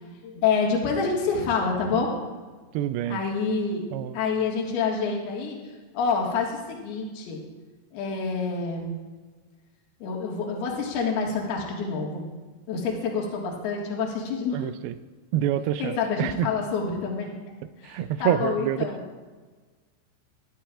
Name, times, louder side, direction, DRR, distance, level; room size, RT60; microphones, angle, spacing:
voice 1, 0.0-2.1 3.1-3.8 4.1-5.6 5.9-7.4 7.9-9.0 10.0-12.3 12.7-14.7 15.8-17.3 17.8-19.0, left 5 dB, 70° left, -2 dB, 3.7 m, -27 dB
voice 2, 2.7-3.2 3.9-4.2 14.5-14.9 15.3-16.5 17.9-18.9, right 11 dB, 80° right, 11 dB, 2.2 m, -27 dB
21.0 x 11.5 x 2.5 m, 1.4 s
omnidirectional pair, 4.9 m